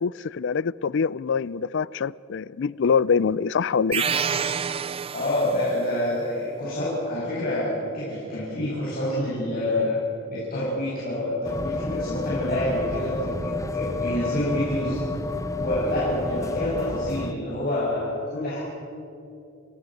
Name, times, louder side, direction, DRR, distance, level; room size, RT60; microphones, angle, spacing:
voice 1, 0.0-4.1, left 6 dB, 65° left, 21 dB, 0.4 m, -24 dB
sound 1, 3.9-5.8, right 7 dB, 30° right, 0.5 m, -27 dB
voice 2, 5.1-10.0 10.3-15.0 15.6-18.6, left 1 dB, 45° left, -8 dB, 7.3 m, -27 dB
sound 2, 11.4-17.3, left 3 dB, 15° left, 0.6 m, -30 dB
29.5 x 17.0 x 7.9 m, 2.8 s
head